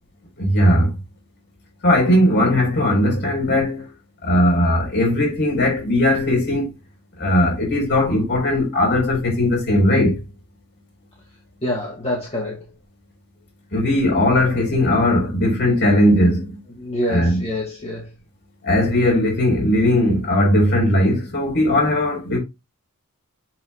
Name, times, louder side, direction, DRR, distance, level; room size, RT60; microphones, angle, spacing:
voice 1, 0.4-0.9 1.8-3.9 4.2-6.7 7.2-10.2 13.7-16.6 17.1-17.4 18.6-22.4, left 1 dB, 55° left, 4.7 m, -18 dB
voice 2, 11.6-12.6 16.7-18.1, left 1 dB, 30° left, 2.2 m, -26 dB
7.6 x 6.2 x 2.4 m
head